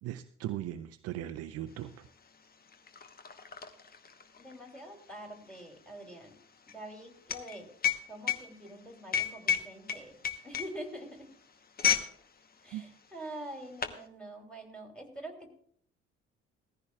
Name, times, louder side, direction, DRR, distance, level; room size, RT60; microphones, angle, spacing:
voice 1, 0.0-2.1 12.7-12.8, right 12 dB, 45° right, 10 dB, 0.6 m, -38 dB
sound 1, 1.8-1.9 2.2-12.2 12.5-12.7 13.4-14.0, left 8 dB, 25° left, 1.0 m, -33 dB
voice 2, 4.4-6.3 6.7-7.7 8.1-10.1 10.4-11.3 12.6-15.5, right 1 dB, 5° left, 2 dB, 3.0 m, -45 dB
17.0 x 14.5 x 2.3 m, 0.62 s
figure-of-eight pair, 50°, 34 cm